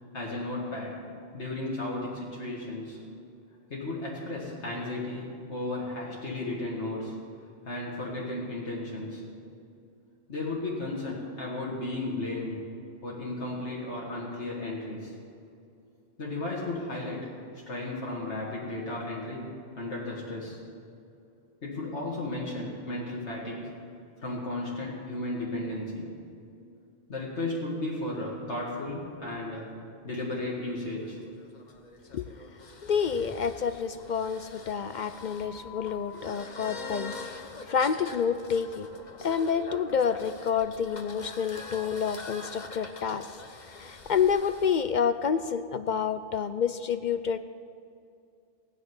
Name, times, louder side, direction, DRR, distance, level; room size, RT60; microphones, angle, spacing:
voice 1, 0.1-1.1 1.3-3.0 3.7-7.2 7.7-9.2 10.3-12.6 13.0-15.1 16.2-17.3 17.7-19.5 19.8-20.6 21.6-23.7 24.2-26.1 27.1-29.7 30.0-31.2, left 2 dB, 85° left, -5 dB, 2.4 m, -34 dB
sound 1, 31.0-44.7, left 3 dB, 40° left, 1.1 m, -44 dB
voice 2, 32.8-38.9 39.2-47.4, left 7 dB, 60° left, 11 dB, 0.5 m, -29 dB
16.5 x 6.6 x 9.5 m, 2.5 s
omnidirectional pair, 1.1 m